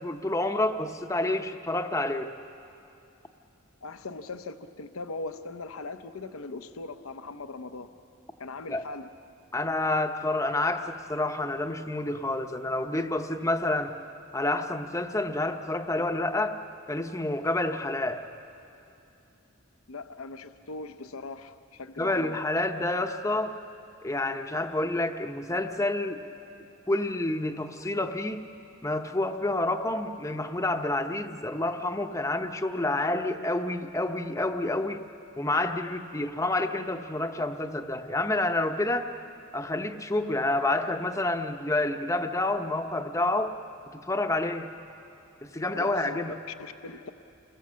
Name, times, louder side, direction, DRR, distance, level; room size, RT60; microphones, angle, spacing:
voice 1, 0.0-2.3 8.7-8.8 9.5-13.9 14.3-16.6 16.9-18.2 22.0-23.6 24.0-26.2 26.9-28.5 28.8-35.0 35.4-39.1 39.5-43.6 43.9-44.7 45.4-46.4, left 2 dB, 15° left, 7 dB, 0.8 m, -28 dB
voice 2, 3.8-7.9 8.4-9.1 19.9-22.4 45.7-47.1, left 3 dB, 85° left, 10 dB, 0.8 m, -40 dB
28.5 x 21.5 x 7.5 m, 2.7 s
head